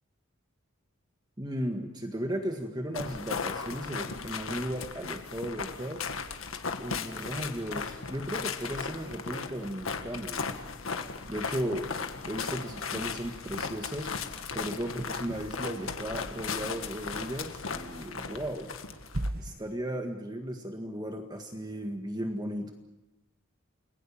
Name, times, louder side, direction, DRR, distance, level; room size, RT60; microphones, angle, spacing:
voice 1, 1.4-6.0 6.8-10.5 11.3-11.9 12.3-18.7 19.4-22.7, equal, 20° right, 4 dB, 1.8 m, -36 dB
sound 1, 2.9-19.3, left 5 dB, 75° left, 1.8 m, -37 dB
sound 2, 9.2-19.7, right 1 dB, 45° right, 1.1 m, -45 dB
30.0 x 21.0 x 7.3 m, 0.97 s
head